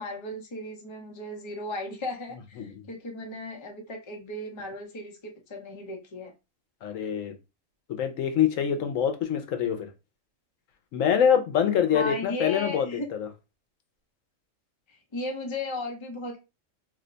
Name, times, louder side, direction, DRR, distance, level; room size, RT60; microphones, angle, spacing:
voice 1, 0.0-6.3 11.9-13.1 14.9-16.4, left 2 dB, 30° left, 0.7 m, -36 dB
voice 2, 6.8-7.3 7.9-9.9 10.9-12.9 13.1-13.3, left 8 dB, 90° left, 1.0 m, -25 dB
2.8 x 2.2 x 3.8 m
omnidirectional pair, 1.3 m